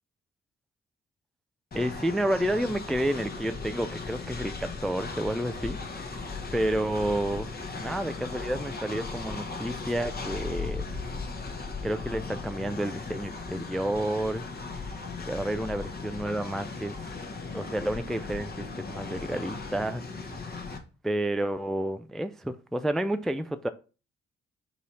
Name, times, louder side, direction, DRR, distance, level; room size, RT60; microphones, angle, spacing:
Train, 1.7-20.8, left 4 dB, 30° left, 1.1 m, -37 dB
voice 1, 1.7-10.8 11.8-14.4 15.2-17.0 17.5-20.3 21.0-23.7, right 1 dB, ahead, 0.3 m, -30 dB
4.0 x 2.7 x 4.7 m
hypercardioid pair, 45°, 30 cm